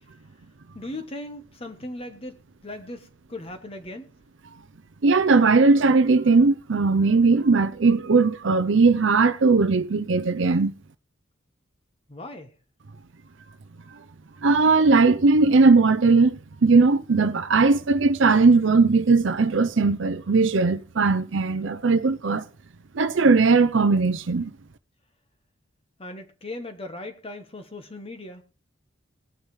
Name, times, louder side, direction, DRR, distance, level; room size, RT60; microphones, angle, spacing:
voice 1, 0.7-4.1 12.1-12.5 26.0-28.4, left 1 dB, 30° left, 1.2 m, -38 dB
voice 2, 5.0-10.7 14.4-22.4 22.9-24.5, right 4 dB, 65° right, 0.6 m, -19 dB
19.5 x 8.9 x 3.2 m
head